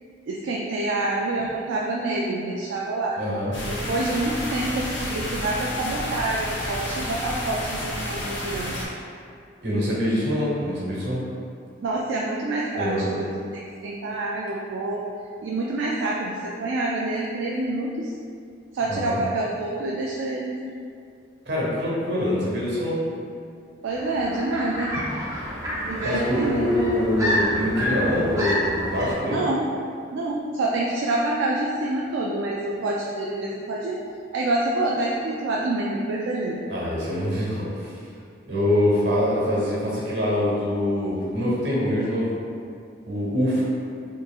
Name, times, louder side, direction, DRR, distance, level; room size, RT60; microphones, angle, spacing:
voice 1, 0.3-3.2 3.6-8.8 11.8-13.3 13.8-15.0 15.4-18.1 18.7-20.8 23.8-25.0 25.8-26.7 29.3-29.7 30.1-34.0 34.3-36.6, right 2 dB, 85° right, -3 dB, 0.3 m, -27 dB
voice 2, 3.2-3.6 9.6-11.3 12.8-13.1 18.9-19.2 21.4-23.0 26.0-29.4 36.7-37.9 38.5-42.3 43.1-43.6, left 1 dB, 65° right, -6 dB, 1.1 m, -24 dB
sound 1, 3.5-8.8, left 1 dB, 85° left, 0.9 m, -31 dB
sound 2, 23.9-29.1, equal, 15° right, 0.5 m, -28 dB
4.3 x 3.0 x 2.4 m, 2.3 s
head